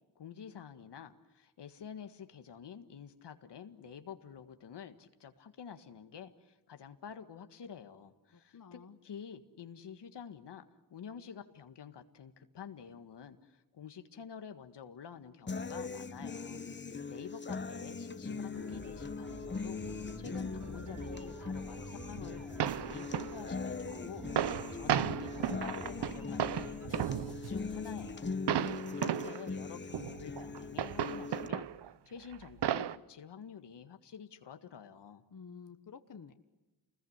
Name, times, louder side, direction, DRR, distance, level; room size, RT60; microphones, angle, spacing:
voice 1, 0.2-10.6 10.9-28.4 28.7-31.7 32.1-35.2, left 7 dB, 75° left, 8 dB, 1.8 m, -49 dB
voice 2, 8.3-9.0 28.2-29.0 35.3-36.3, left 6 dB, 50° left, 8 dB, 1.5 m, -52 dB
sound 1, 15.5-31.5, left 4 dB, 25° left, 1.1 m, -41 dB
sound 2, 18.5-28.1, right 2 dB, 45° right, 5.6 m, -49 dB
sound 3, 22.2-22.3 22.6-23.4 23.9-24.0 24.2-27.7 28.5-29.4 29.9-31.9 32.3-33.0, right 10 dB, 70° right, 0.9 m, -34 dB
28.5 x 21.0 x 8.1 m, 1.1 s
cardioid pair, 85°, 42 cm